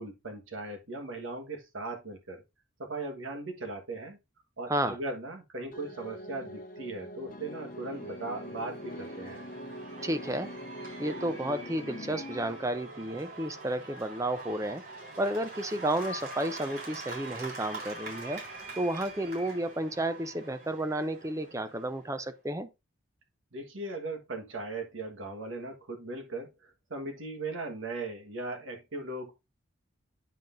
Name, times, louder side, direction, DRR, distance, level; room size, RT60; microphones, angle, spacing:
voice 1, 0.0-2.4 2.8-4.2 4.6-9.4 23.5-29.3, right 2 dB, 75° right, 1.5 m, -38 dB
sound 1, 5.7-14.2, equal, 40° left, 0.7 m, -44 dB
Cheering / Applause / Crowd, 7.5-22.2, right 2 dB, 50° right, 3.6 m, -44 dB
voice 2, 10.0-10.5 11.0-14.8 15.2-18.4 18.8-22.7, right 1 dB, 15° right, 0.5 m, -32 dB
9.2 x 5.7 x 2.6 m
head